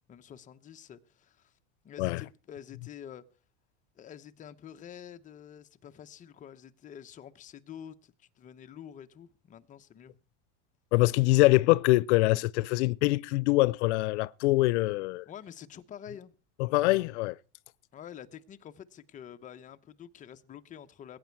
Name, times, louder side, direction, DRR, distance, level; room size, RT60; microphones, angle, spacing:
voice 1, 0.1-1.5 1.8-3.2 4.0-10.1 15.3-16.3 17.9-21.2, left 9 dB, 25° left, 0.9 m, -48 dB
voice 2, 10.9-15.2 16.6-17.4, left 20 dB, 90° left, 0.6 m, -24 dB
21.0 x 9.4 x 4.6 m
supercardioid pair, 155°, 33 cm